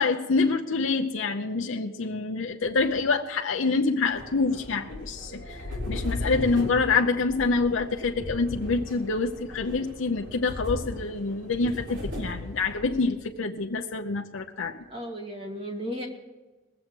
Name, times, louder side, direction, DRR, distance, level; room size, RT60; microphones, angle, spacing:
voice 1, 0.0-5.6 5.9-14.8, left 4 dB, 90° left, 3 dB, 0.7 m, -26 dB
sound 1, 4.1-13.2, left 1 dB, 80° right, 3.7 m, -37 dB
voice 2, 14.8-16.1, equal, 30° right, 1 dB, 2.0 m, -35 dB
19.5 x 7.8 x 6.2 m, 1.2 s
head